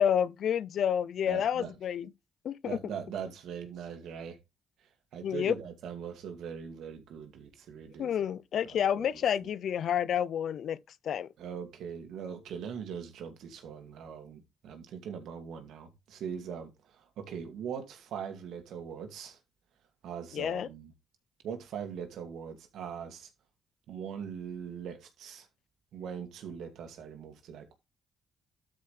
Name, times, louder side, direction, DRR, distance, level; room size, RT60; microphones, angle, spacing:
voice 1, 0.0-2.1 2.4-2.9 5.2-5.6 8.0-10.8 11.0-11.3 20.3-20.7, left 9 dB, 65° left, 0.5 m, -29 dB
voice 2, 1.3-1.7 2.6-4.4 5.1-8.1 8.7-9.1 11.4-19.4 20.0-20.9 21.4-23.3 23.9-25.5 25.9-27.7, right 7 dB, 80° right, 2.3 m, -41 dB
12.5 x 5.3 x 3.3 m
cardioid pair, 90°, 0 cm